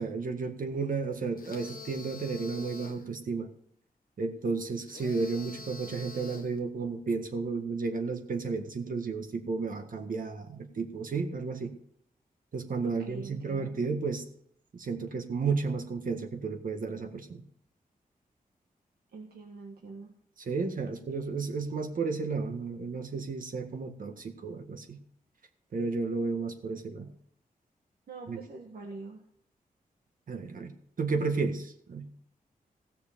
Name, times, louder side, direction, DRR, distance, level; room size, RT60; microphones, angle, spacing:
voice 1, 0.0-3.5 4.2-11.7 12.5-14.2 14.7-17.4 20.4-25.0 25.7-27.1 28.3-28.4 30.3-32.1, right 4 dB, 65° right, 5 dB, 1.8 m, -33 dB
sound 1, 1.4-3.1 4.9-6.6, left 4 dB, 65° left, 1.2 m, -46 dB
voice 2, 12.8-13.8 19.1-20.1 28.1-29.2, right 3 dB, 90° right, 1 dB, 1.7 m, -44 dB
16.0 x 6.7 x 6.8 m, 0.67 s
wide cardioid pair, 150°, 15 cm